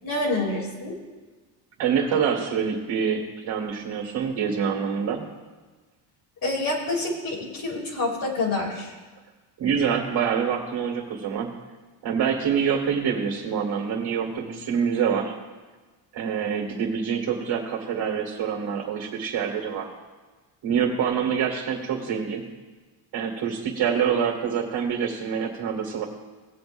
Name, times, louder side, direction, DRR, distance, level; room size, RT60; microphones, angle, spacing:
voice 1, 0.0-1.0 6.4-8.9, left 2 dB, 45° left, -1 dB, 3.0 m, -27 dB
voice 2, 1.8-5.3 9.6-11.5 12.0-15.3 16.1-19.9 20.6-22.4 23.1-26.1, right 7 dB, 50° right, -1 dB, 2.2 m, -26 dB
18.0 x 7.9 x 2.6 m, 1.3 s
cardioid pair, 115°, 49 cm